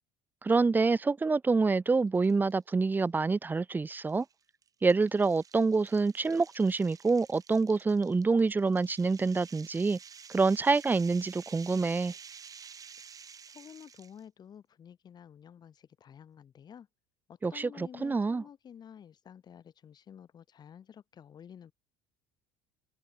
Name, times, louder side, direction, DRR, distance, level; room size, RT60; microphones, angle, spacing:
voice 1, 0.4-4.2 4.8-10.0 10.3-12.1 17.4-18.4, right 4 dB, 15° right, 0.8 m, -27 dB
sound 1, 2.1-2.6 3.0-3.1 4.1-14.2, right 7 dB, 35° right, 3.9 m, -51 dB
voice 2, 13.4-16.9 17.3-21.7, left 8 dB, 40° left, 7.2 m, -51 dB
open air
supercardioid pair, 95°, 11 cm